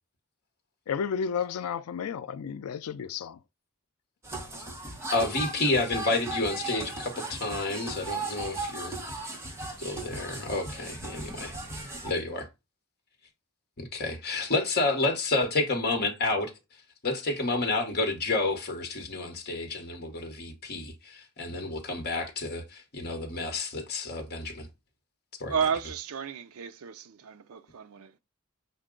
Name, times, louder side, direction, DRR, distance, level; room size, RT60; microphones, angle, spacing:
voice 1, 0.9-3.4, left 7 dB, 75° left, 0.4 m, -32 dB
sound 1, 4.2-12.1, right 2 dB, 10° right, 0.8 m, -37 dB
voice 2, 5.1-9.0 9.8-11.6 12.0-12.5 13.8-16.5 17.0-24.7 25.4-25.5, left 2 dB, 45° left, 1.0 m, -30 dB
voice 3, 25.5-28.2, right 6 dB, 70° right, 0.4 m, -32 dB
5.8 x 2.2 x 3.7 m
head